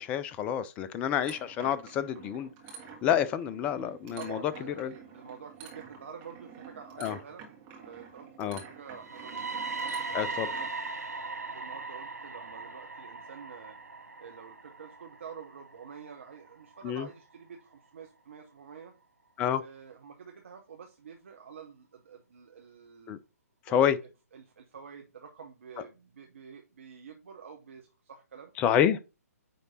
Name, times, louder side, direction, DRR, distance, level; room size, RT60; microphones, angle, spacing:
voice 1, 0.0-2.5 3.0-4.4 4.8-4.9 7.0-7.2 8.4-8.6 10.1-10.5 16.8-17.1 19.4-19.6 23.1-23.2 23.7-24.0 28.6-29.0, left 9 dB, 15° left, 0.4 m, -28 dB
sound 1, 1.2-10.7, right 6 dB, 20° right, 1.7 m, -49 dB
voice 2, 4.2-7.4 7.8-9.6 10.3-10.7 11.5-13.8 14.2-18.9 19.6-23.1 23.7-23.9 24.3-28.5, right 6 dB, 50° right, 1.1 m, -48 dB
sound 2, 8.9-16.8, right 4 dB, 75° right, 1.0 m, -39 dB
9.3 x 3.3 x 4.1 m
figure-of-eight pair, 130°, 9 cm